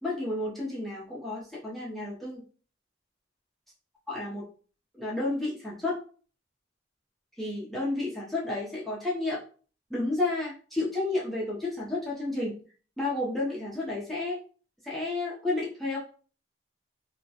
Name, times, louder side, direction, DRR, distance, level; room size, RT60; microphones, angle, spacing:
voice 1, 0.0-2.4 4.1-4.4 5.0-6.0 7.4-9.4 9.9-12.6 13.0-14.4 14.8-16.0, left 2 dB, ahead, -7 dB, 0.5 m, -31 dB
2.2 x 2.0 x 2.7 m, 0.40 s
head